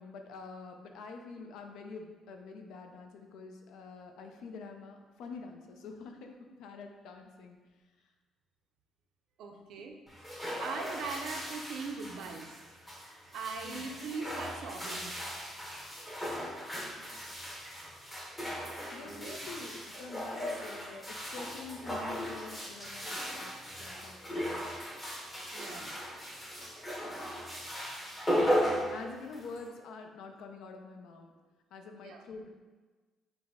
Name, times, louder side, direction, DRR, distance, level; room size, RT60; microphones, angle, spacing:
voice 1, 0.0-7.6 13.6-13.9 18.9-23.5 23.8-24.8 25.7-25.9 28.9-31.3 31.7-32.5, left 4 dB, 70° left, 4 dB, 0.5 m, -46 dB
voice 2, 9.4-10.0 10.2-12.6 13.3-15.2 19.0-19.4 25.1-26.2 32.0-32.2, right 4 dB, 65° right, 3 dB, 0.5 m, -41 dB
sound 1, 10.1-29.7, equal, 10° left, 0.7 m, -37 dB
5.8 x 2.1 x 3.5 m, 1.3 s
cardioid pair, 170°, 0 cm